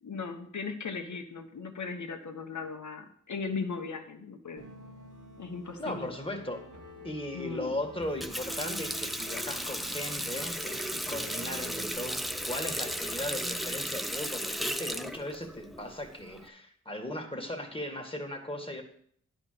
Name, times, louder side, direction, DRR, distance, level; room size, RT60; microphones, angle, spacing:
voice 1, 0.0-4.6 5.4-6.1 7.3-7.8 14.4-14.5, left 4 dB, 70° left, 5 dB, 1.3 m, -38 dB
sound 1, 4.6-13.3, equal, 90° right, 1.7 m, -49 dB
voice 2, 5.8-6.7 7.0-18.8, left 1 dB, 20° left, 3 dB, 2.0 m, -37 dB
Water tap faucet, 8.0-16.5, equal, ahead, 0.6 m, -35 dB
10.0 x 5.3 x 6.9 m, 0.63 s
cardioid pair, 40°, 30 cm